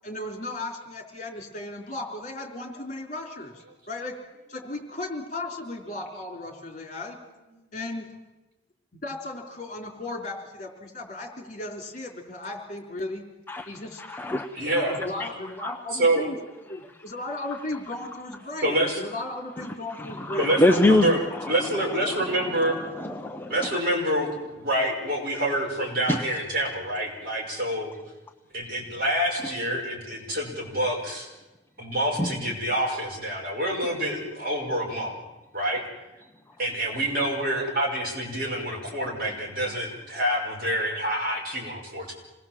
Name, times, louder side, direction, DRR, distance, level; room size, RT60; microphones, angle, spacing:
voice 1, 0.0-3.6 3.9-4.2 4.5-7.2 7.7-8.1 8.9-13.2 13.7-14.0 14.9-16.4 16.7-20.6 32.8-33.0, left 2 dB, 40° left, 2 dB, 3.7 m, -35 dB
voice 2, 13.5-15.8 16.4-17.0 17.4-18.2 19.1-23.8 25.3-25.4 26.1-26.2 29.4-29.6 32.2-32.6 36.2-36.3 37.5-37.6, left 1 dB, 10° left, 4 dB, 0.8 m, -28 dB
voice 3, 14.6-15.0 15.9-16.3 18.6-19.0 20.4-21.2 21.5-22.8 23.5-27.9 28.5-31.3 31.8-35.2 35.5-35.8 36.6-42.1, right 1 dB, 50° right, 0 dB, 5.6 m, -27 dB
26.5 x 19.5 x 7.5 m, 1.1 s
head